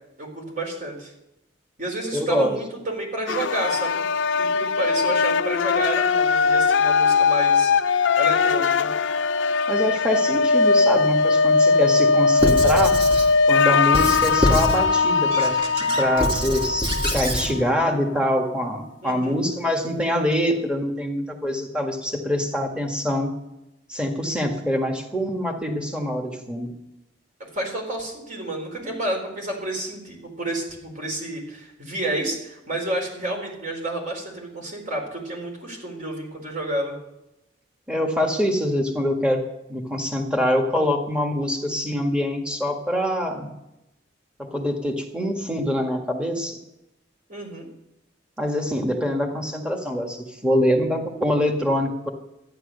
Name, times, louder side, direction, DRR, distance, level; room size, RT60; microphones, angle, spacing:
voice 1, 0.2-1.1 1.8-4.0 4.4-8.9 19.0-19.4 27.4-37.0 47.3-47.7, right 1 dB, 45° right, 1 dB, 4.2 m, -30 dB
voice 2, 2.1-2.5 9.7-13.0 13.5-23.3 23.9-26.7 37.9-39.4 39.7-43.5 44.4-46.6 48.4-52.1, equal, 5° right, 2 dB, 1.8 m, -24 dB
sound 1, 3.3-18.3, left 4 dB, 70° left, 0.5 m, -20 dB
Squeak / Writing, 12.4-13.3 13.9-14.8 15.3-17.5, equal, 30° right, 2.2 m, -25 dB
13.0 x 10.5 x 6.7 m, 0.88 s
head